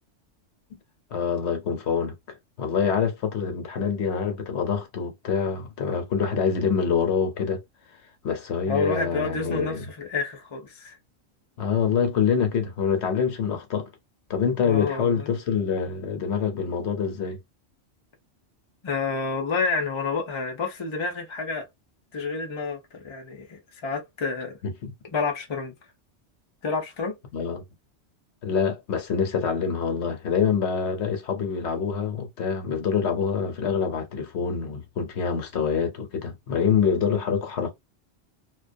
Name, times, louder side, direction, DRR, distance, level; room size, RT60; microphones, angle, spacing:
voice 1, 1.1-2.1 2.6-7.6 8.2-9.8 11.6-13.9 14.3-17.4 24.6-24.9 27.3-27.6 28.4-37.7, left 6 dB, 65° left, 1.0 m, -25 dB
voice 2, 8.7-11.0 14.6-15.3 18.8-21.7 22.1-24.6 25.0-25.7 26.6-27.1, left 4 dB, 45° left, 0.4 m, -29 dB
2.2 x 2.2 x 2.5 m
omnidirectional pair, 1.3 m